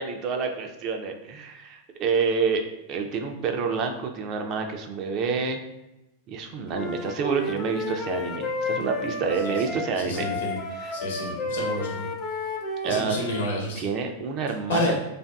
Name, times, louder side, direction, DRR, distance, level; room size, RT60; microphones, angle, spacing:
voice 1, 0.0-5.6 6.3-10.3 10.8-11.0 12.8-13.2 13.8-15.0, right 5 dB, 40° right, 4 dB, 0.3 m, -28 dB
Wind instrument woodwind instrument, 6.7-13.5, left 2 dB, 30° left, 0.4 m, -32 dB
voice 2, 10.0-10.5 10.9-12.1 12.8-13.8 14.7-15.0, left 1 dB, 80° left, 0 dB, 0.8 m, -29 dB
2.5 x 2.5 x 2.2 m, 0.96 s
hypercardioid pair, 120°, 0 cm